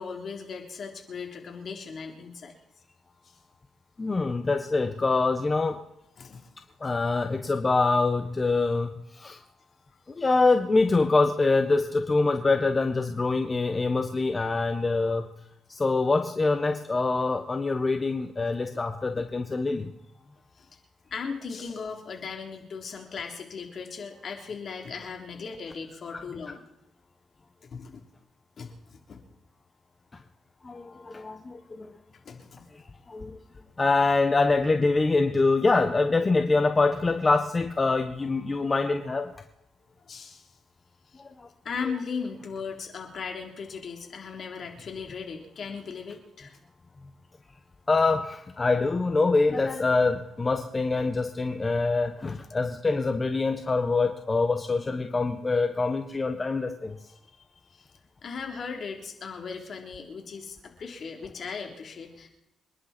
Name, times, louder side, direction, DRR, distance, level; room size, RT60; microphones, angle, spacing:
voice 1, 0.0-2.5 3.2-3.3 6.2-6.5 19.2-19.3 20.6-20.7 21.1-26.6 27.7-28.0 28.6-29.2 32.3-32.7 40.0-40.5 41.1-41.2 41.6-46.6 57.7-57.9 58.2-62.3, left 5 dB, 50° left, 2 dB, 3.7 m, -37 dB
voice 2, 4.0-5.8 6.8-9.4 10.1-15.3 15.7-19.9 26.1-26.2 30.6-32.0 32.7-33.4 33.8-39.3 41.2-41.5 47.9-57.0, left 3 dB, 25° left, 6 dB, 1.3 m, -25 dB
27.0 x 11.0 x 4.5 m, 0.82 s
cardioid pair, 90°, 0 cm